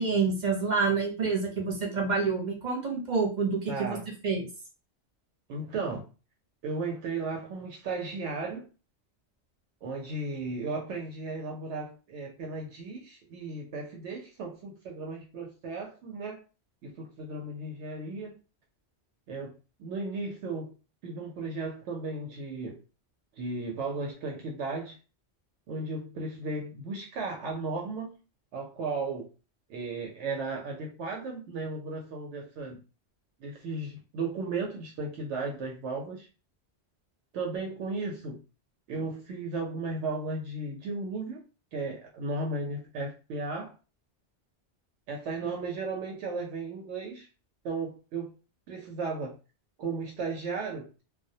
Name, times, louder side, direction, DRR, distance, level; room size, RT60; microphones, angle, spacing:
voice 1, 0.0-4.0 4.2-4.5, right 4 dB, 50° right, -1 dB, 0.7 m, -28 dB
voice 2, 3.7-4.0 5.5-6.1 6.6-8.7 9.8-16.4 16.8-18.4 19.3-19.5 19.8-20.7 21.0-22.8 23.4-25.0 25.7-28.1 28.5-29.3 29.7-32.8 33.4-36.3 37.3-38.4 38.9-41.4 41.7-43.7 45.1-47.3 47.6-48.3 48.7-49.3 49.8-50.9, right 3 dB, 80° right, 0 dB, 0.9 m, -35 dB
2.3 x 2.0 x 2.6 m, 0.33 s
omnidirectional pair, 1.2 m